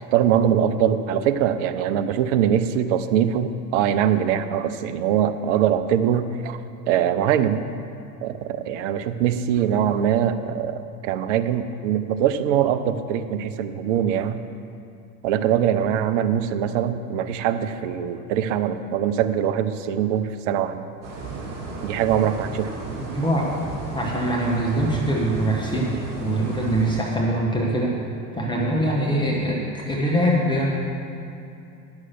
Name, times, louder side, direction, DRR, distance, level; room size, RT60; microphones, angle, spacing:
voice 1, 0.1-6.6 6.9-7.7 8.2-10.8 11.0-14.4 15.2-20.8 21.8-22.7, right 9 dB, 45° right, 9 dB, 0.7 m, -22 dB
sound 1, 21.0-27.0, right 3 dB, 30° right, 2.6 m, -33 dB
voice 2, 23.1-23.6 23.9-28.0 28.3-30.7, right 1 dB, 10° left, -3 dB, 1.1 m, -23 dB
9.7 x 6.4 x 7.4 m, 2.7 s
figure-of-eight pair, 80°, 50 cm